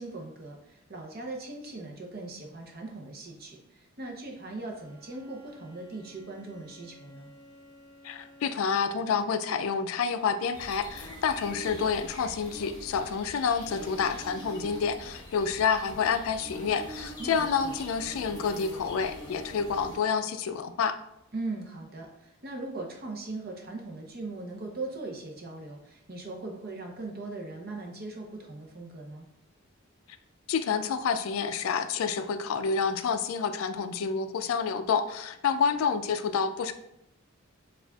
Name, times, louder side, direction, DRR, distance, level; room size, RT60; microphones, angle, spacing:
voice 1, 0.0-7.3 17.2-17.7 21.3-29.3, right 2 dB, 45° right, 1 dB, 0.7 m, -39 dB
Bowed string instrument, 4.5-9.0, equal, 10° right, 1.3 m, -55 dB
voice 2, 8.0-21.0 30.5-36.7, left 6 dB, 75° left, 10 dB, 0.3 m, -28 dB
sound 1, 10.5-20.0, equal, 20° left, 0.8 m, -43 dB
6.9 x 2.4 x 2.3 m, 0.82 s
head